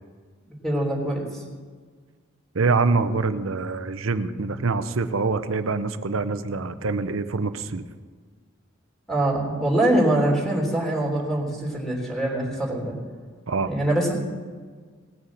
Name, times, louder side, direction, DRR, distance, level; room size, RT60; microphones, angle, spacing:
voice 1, 0.6-1.4 9.1-12.9 13.7-14.1, right 1 dB, ahead, -2 dB, 3.4 m, -23 dB
voice 2, 2.5-7.8 13.5-13.7, right 4 dB, 85° right, 11 dB, 0.8 m, -25 dB
19.0 x 6.7 x 7.2 m, 1.6 s
head